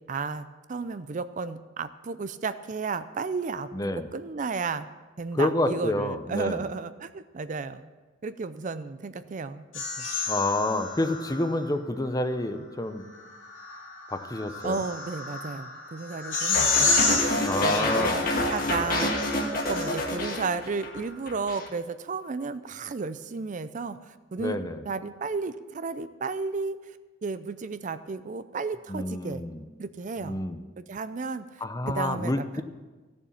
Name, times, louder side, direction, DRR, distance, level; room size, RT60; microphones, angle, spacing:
voice 1, 0.1-3.7 4.0-4.9 5.2-7.9 8.2-10.1 14.6-24.6 24.8-26.8 27.2-29.4 29.8-30.3 30.8-32.6, right 4 dB, 40° right, 13 dB, 0.4 m, -33 dB
voice 2, 3.7-4.1 5.3-6.6 10.3-13.0 14.1-14.8 17.4-18.1 24.4-24.8 28.9-29.6 30.2-30.6 31.6-32.6, left 1 dB, 20° left, 9 dB, 0.7 m, -28 dB
sound 1, 9.7-11.7 13.1-20.3, left 4 dB, 90° left, 3.5 m, -30 dB
sound 2, 16.5-21.0 21.3-21.7, left 1 dB, 50° left, 1.8 m, -28 dB
14.5 x 7.1 x 7.3 m, 1.3 s
head